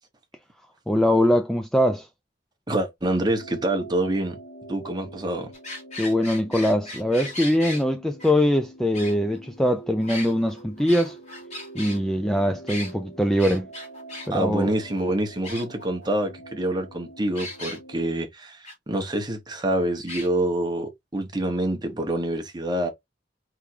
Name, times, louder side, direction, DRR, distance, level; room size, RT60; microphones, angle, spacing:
voice 1, 0.9-2.1 6.0-11.2 11.7-13.7 14.3-14.7, equal, 5° left, 0.4 m, -22 dB
voice 2, 2.7-4.4 4.7-5.5 14.3-22.9, right 1 dB, 25° right, 1.2 m, -26 dB
sound 1, 3.2-18.2, right 2 dB, 80° left, 2.2 m, -46 dB
sound 2, 5.5-7.8 8.2-8.3 8.9-9.6 10.0-12.0 12.7-12.9 13.4-14.3 14.6-14.7 15.0-15.1 15.4-16.1 17.3-17.8 18.6-18.7 19.1-19.2 20.1-20.3, left 2 dB, 40° left, 2.6 m, -37 dB
4.8 x 3.5 x 2.8 m
head